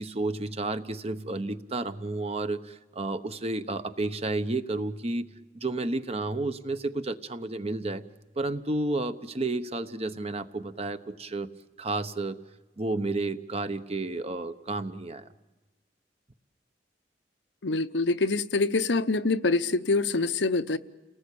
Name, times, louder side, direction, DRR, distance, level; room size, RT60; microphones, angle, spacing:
voice 1, 0.0-5.3 5.5-8.0 8.4-11.5 11.8-12.4 12.8-15.3, right 2 dB, 35° right, 10 dB, 1.0 m, -31 dB
voice 2, 17.6-20.8, left 3 dB, 85° left, 10 dB, 0.9 m, -25 dB
29.5 x 19.0 x 8.6 m, 1.2 s
head